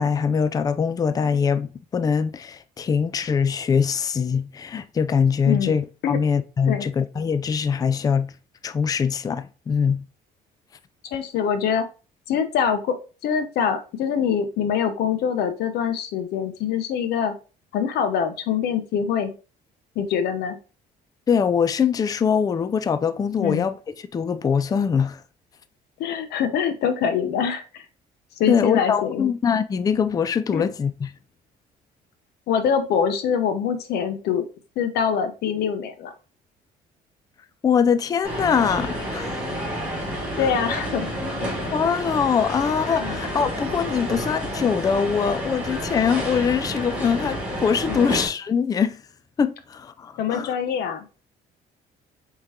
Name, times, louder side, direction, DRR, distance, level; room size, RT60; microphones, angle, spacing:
voice 1, 0.0-8.3 8.6-10.0 21.3-23.7 24.1-25.2 28.5-31.1 37.6-39.4 40.4-40.5 41.7-49.0 49.4-50.5, left 6 dB, 20° left, 0.3 m, -23 dB
voice 2, 5.5-6.2 6.7-6.9 11.1-11.8 12.3-13.0 13.2-17.3 17.7-19.3 20.0-20.6 23.4-23.7 26.0-27.8 28.4-29.3 30.5-30.6 32.5-34.4 34.8-36.1 40.4-41.1 41.4-41.6 43.0-43.2 47.9-48.1 50.2-51.1, left 7 dB, 75° left, 0.8 m, -24 dB
sound 1, 38.2-48.3, equal, 10° right, 2.3 m, -29 dB
4.6 x 3.7 x 2.7 m
cardioid pair, 110°, 17 cm